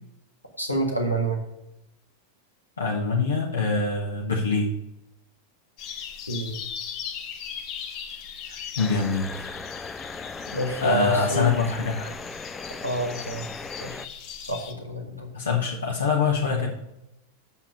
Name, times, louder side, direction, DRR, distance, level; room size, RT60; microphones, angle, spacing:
voice 1, 0.6-1.4 6.3-6.6 10.5-11.5 12.7-13.5 13.8-14.0 14.4-15.3, right 2 dB, 90° left, 1 dB, 1.8 m, -28 dB
voice 2, 2.8-4.7 8.5-9.5 10.8-12.1 15.3-16.7, left 4 dB, 70° left, -2 dB, 1.4 m, -24 dB
sound 1, 5.8-14.7, left 7 dB, 40° left, 1.1 m, -39 dB
sound 2, 8.8-14.1, left 4 dB, 15° left, 0.5 m, -38 dB
8.0 x 6.1 x 5.2 m, 0.86 s
figure-of-eight pair, 90°, 0 cm